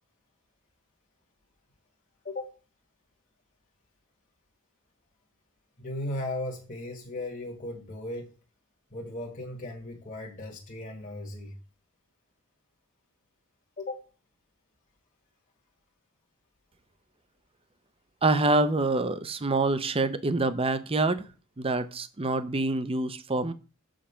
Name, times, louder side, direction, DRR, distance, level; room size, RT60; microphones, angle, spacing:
voice 1, 2.2-2.6 5.8-8.4 8.9-11.6 13.8-14.1, left 1 dB, 35° left, 1.5 m, -36 dB
voice 2, 18.2-21.3 21.6-23.5, right 2 dB, 25° right, 0.6 m, -26 dB
7.3 x 5.2 x 5.6 m
head